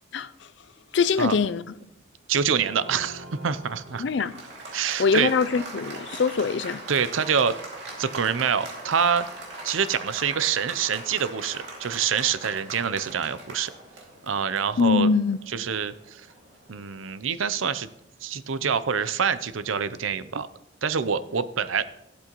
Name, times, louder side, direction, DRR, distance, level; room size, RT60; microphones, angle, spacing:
voice 1, 0.1-0.5 0.9-1.6 4.0-4.3 5.0-6.8 14.8-15.4 18.6-18.8, left 5 dB, 65° left, 0.4 m, -23 dB
voice 2, 2.3-4.0 4.7-5.3 6.9-7.6 8.0-9.3 9.6-13.7 14.2-15.1 15.5-16.3 16.7-17.9 18.2-20.5 20.8-21.9, right 7 dB, 85° right, 0.6 m, -26 dB
Applause, 2.5-16.9, right 2 dB, 60° right, 2.4 m, -41 dB
15.0 x 12.0 x 3.0 m
head